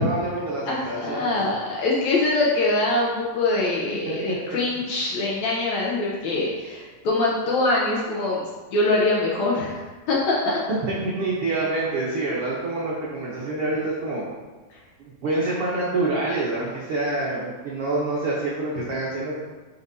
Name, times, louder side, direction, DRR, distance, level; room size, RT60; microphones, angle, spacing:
voice 1, 0.0-1.5 4.1-4.4 10.7-14.2 15.0-19.4, right 2 dB, 75° right, -6 dB, 1.3 m, -27 dB
voice 2, 0.7-8.4 8.7-9.8 10.1-10.6 14.7-14.8, left 2 dB, 70° left, -4 dB, 1.8 m, -23 dB
9.6 x 5.2 x 2.7 m, 1.3 s
omnidirectional pair, 4.0 m